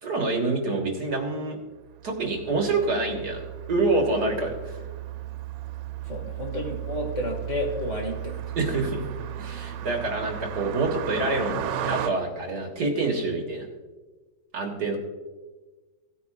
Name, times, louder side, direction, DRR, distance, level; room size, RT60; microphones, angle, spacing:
voice 1, 0.0-1.6 2.0-4.8 8.6-9.0 9.4-13.7 14.5-15.0, right 3 dB, 55° right, 2 dB, 1.9 m, -27 dB
Car passing by, 2.0-12.1, right 11 dB, 90° right, 1.4 m, -35 dB
voice 2, 6.1-8.4, left 1 dB, 40° left, 0 dB, 2.2 m, -31 dB
17.0 x 9.4 x 2.4 m, 1.3 s
omnidirectional pair, 2.1 m